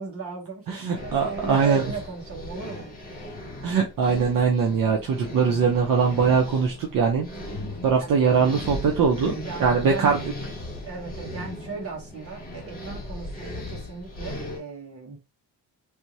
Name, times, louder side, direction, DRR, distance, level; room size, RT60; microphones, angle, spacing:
voice 1, 0.0-2.9 7.9-8.3 9.4-10.1 10.8-15.2, right 4 dB, 35° right, 1.4 m, -37 dB
voice 2, 0.7-1.9 3.6-7.3 7.8-9.3 9.6-10.2, right 5 dB, 60° right, 0.8 m, -21 dB
sound 1, 0.9-14.6, left 1 dB, 25° left, 1.4 m, -37 dB
3.4 x 2.7 x 3.0 m
wide cardioid pair, 165°, 38 cm